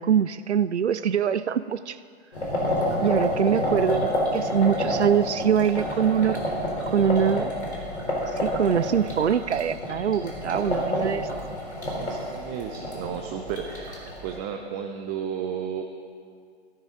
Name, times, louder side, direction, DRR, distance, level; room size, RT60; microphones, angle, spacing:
voice 1, 0.0-2.0 3.0-6.4 6.9-7.5 8.4-11.3, right 8 dB, 85° right, 15 dB, 0.5 m, -23 dB
sound 1, 2.3-14.4, equal, 75° left, 3.7 m, -29 dB
voice 2, 10.7-11.5 11.9-15.8, right 8 dB, 25° right, 4 dB, 0.6 m, -34 dB
16.0 x 12.5 x 3.8 m, 2.2 s
figure-of-eight pair, 110°, 33 cm